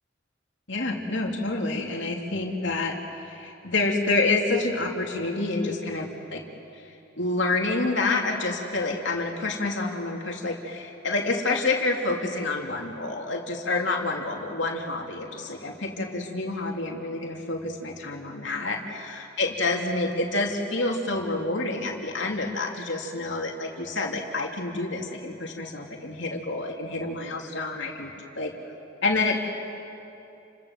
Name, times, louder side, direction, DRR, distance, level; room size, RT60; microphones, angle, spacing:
voice 1, 0.7-6.4 6.7-6.8 7.2-28.1 28.4-28.5 29.0-29.4, left 2 dB, 60° left, 1 dB, 3.2 m, -28 dB
29.5 x 26.5 x 7.5 m, 2.8 s
head